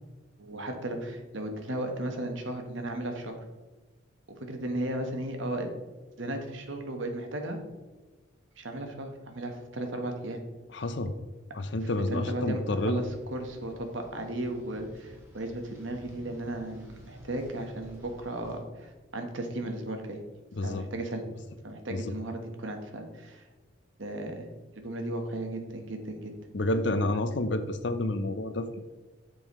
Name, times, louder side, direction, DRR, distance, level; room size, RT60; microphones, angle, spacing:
voice 1, 0.4-3.4 4.3-5.7 6.2-7.6 8.6-10.4 11.8-20.2 20.6-21.2 21.6-23.5 24.0-24.5 24.8-26.3, right 1 dB, 75° right, 5 dB, 1.2 m, -35 dB
voice 2, 10.7-11.1 11.5-13.0 20.6-20.9 21.9-22.0 26.5-28.8, left 1 dB, 60° left, 10 dB, 0.6 m, -29 dB
sound 1, 12.5-18.6, equal, 10° right, 1.9 m, -51 dB
8.7 x 6.9 x 3.1 m, 1.2 s
head